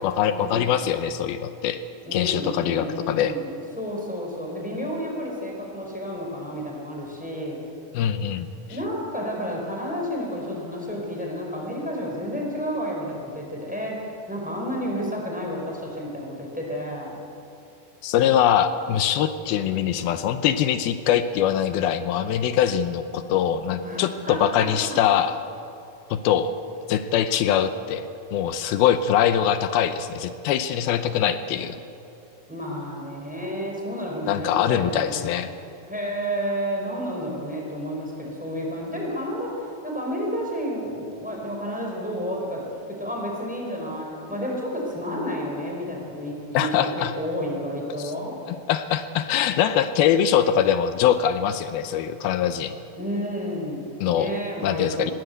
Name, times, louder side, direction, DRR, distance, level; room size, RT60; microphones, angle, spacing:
voice 1, 0.0-1.8 2.1-3.3 7.9-8.5 18.0-25.3 26.1-26.6 26.9-28.0 28.3-31.8 34.3-35.5 46.5-47.1 48.5-52.7 54.0-54.3 54.6-55.1, left 9 dB, 85° left, 10 dB, 2.7 m, -23 dB
voice 2, 2.0-7.7 8.7-17.2 23.8-25.0 32.5-35.4 35.9-48.4 53.0-55.1, equal, ahead, -1 dB, 4.6 m, -31 dB
21.0 x 19.0 x 8.1 m, 2.7 s
omnidirectional pair, 4.3 m